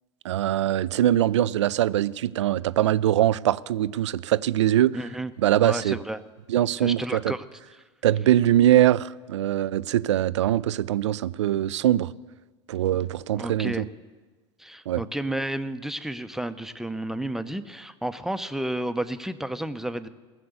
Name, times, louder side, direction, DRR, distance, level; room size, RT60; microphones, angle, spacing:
voice 1, 0.2-5.0 5.4-6.0 6.5-7.3 8.0-12.1 12.7-13.9 14.9-15.0, right 12 dB, 80° right, 0.4 m, -22 dB
voice 2, 4.9-5.3 5.6-6.2 6.8-7.4 7.7-7.8 13.3-13.9 14.6-20.1, right 1 dB, 5° right, 0.7 m, -31 dB
17.5 x 6.8 x 8.0 m
hypercardioid pair, 85°, 15 cm